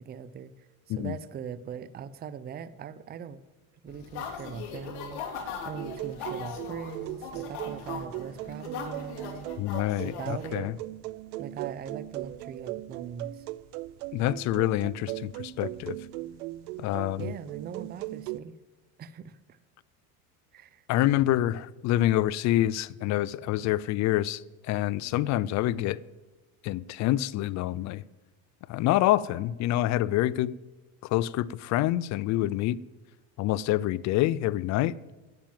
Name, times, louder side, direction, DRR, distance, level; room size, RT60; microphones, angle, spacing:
voice 1, 0.0-3.4 3.8-9.5 10.0-10.7 11.4-13.5 17.2-18.6 19.0-19.6 20.5-20.8, right 7 dB, 25° right, 0.5 m, -41 dB
sound 1, 3.9-10.6, left 6 dB, 60° left, 2.6 m, -40 dB
sound 2, 5.8-18.4, right 17 dB, 80° right, 0.6 m, -38 dB
voice 2, 9.6-10.8 14.1-16.0 16.8-17.3 20.9-26.0 26.6-28.0 28.7-30.5 31.0-32.8 33.4-35.0, left 14 dB, 40° left, 0.4 m, -27 dB
12.0 x 9.0 x 7.4 m
supercardioid pair, 110°, 44 cm